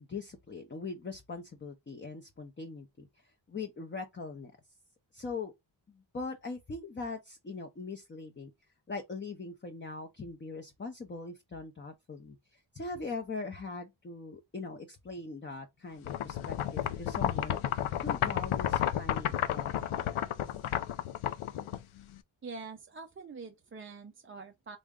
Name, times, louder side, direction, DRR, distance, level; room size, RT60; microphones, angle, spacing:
voice 1, 0.0-4.5 5.1-5.5 5.9-8.5 8.9-20.3, left 4 dB, 25° left, 0.5 m, -41 dB
sound 1, 16.0-22.2, left 11 dB, 85° left, 0.5 m, -32 dB
voice 2, 22.4-24.8, right 4 dB, 30° right, 0.3 m, -45 dB
3.7 x 2.1 x 3.5 m
wide cardioid pair, 85°, 48 cm